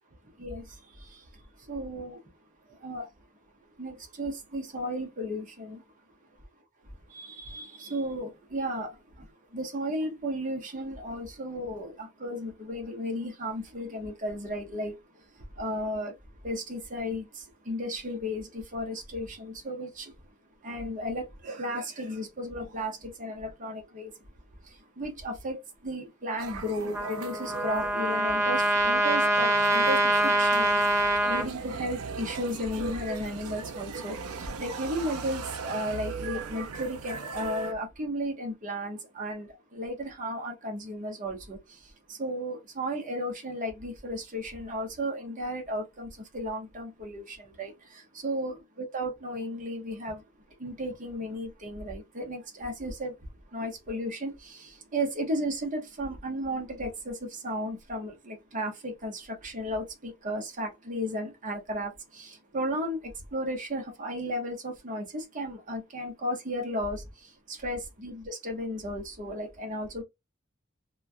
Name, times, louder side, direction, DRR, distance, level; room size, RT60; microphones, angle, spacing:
voice 1, 1.7-2.2 2.8-3.1 3.8-5.8 7.1-9.0 9.5-14.9 15.6-16.1 16.4-20.1 20.6-24.1 25.0-30.8 31.3-41.6 42.1-50.2 50.6-53.1 53.5-67.0 67.5-70.0, equal, 35° right, 0.8 m, -34 dB
sound 1, 26.4-37.7, right 5 dB, 85° right, 0.5 m, -38 dB
Trumpet, 26.9-31.5, right 1 dB, 15° right, 0.6 m, -24 dB
3.0 x 2.3 x 2.5 m
head